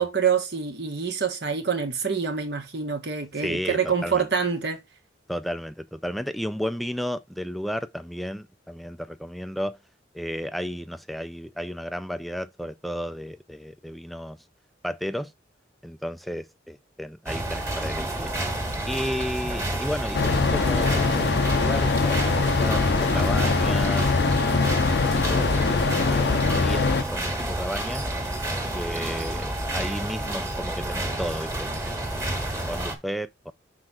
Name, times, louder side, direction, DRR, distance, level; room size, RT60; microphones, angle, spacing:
voice 1, 0.0-4.8, right 6 dB, 60° right, 1.6 m, -26 dB
voice 2, 3.4-4.3 5.3-9.8 10.1-14.4 14.8-15.3 15.8-18.3 18.9-24.8 25.1-28.0 28.7-33.5, equal, ahead, 0.4 m, -33 dB
sound 1, 17.3-33.0, right 1 dB, 15° right, 1.6 m, -30 dB
sound 2, 20.1-27.0, left 4 dB, 60° left, 0.6 m, -22 dB
6.1 x 4.3 x 4.8 m
head